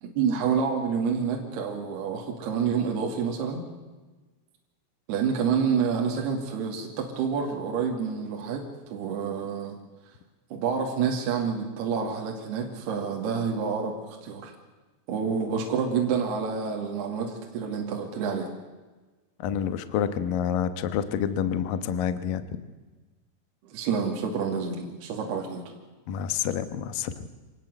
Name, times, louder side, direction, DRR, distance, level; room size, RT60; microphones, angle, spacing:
voice 1, 0.0-3.6 5.1-9.8 10.5-14.5 15.1-18.5 23.6-25.6, right 6 dB, 55° right, 1 dB, 3.9 m, -28 dB
voice 2, 19.4-22.6 26.1-27.3, left 8 dB, 85° left, 11 dB, 1.9 m, -28 dB
26.5 x 19.0 x 8.1 m, 1.3 s
omnidirectional pair, 6.0 m